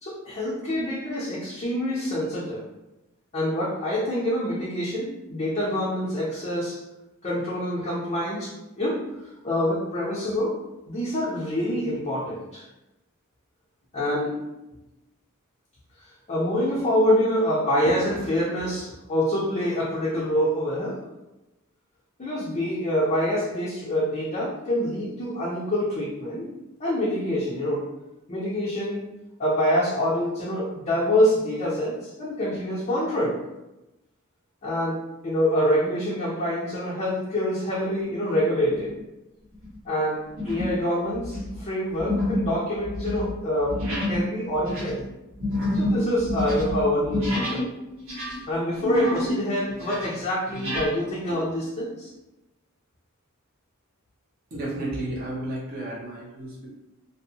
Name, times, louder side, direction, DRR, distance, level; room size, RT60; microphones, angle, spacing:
voice 1, 0.0-2.6 3.3-6.8 7.2-9.0 9.4-10.6 10.9-12.6 13.9-14.4 16.3-21.0 22.2-26.5 26.8-27.8 28.3-29.0 29.4-33.4 34.6-38.9 39.8-43.8 44.1-45.0 45.7-47.7 48.5-52.1, equal, 30° left, -8 dB, 0.5 m, -26 dB
sound 1, 38.7-39.0 39.5-39.7 40.4-40.8 41.1-47.7 48.0-49.4 49.7-50.9, left 1 dB, 60° right, 1.3 m, -28 dB
voice 2, 54.5-56.7, right 1 dB, 45° right, -6 dB, 0.7 m, -32 dB
2.6 x 2.0 x 2.7 m, 0.98 s
head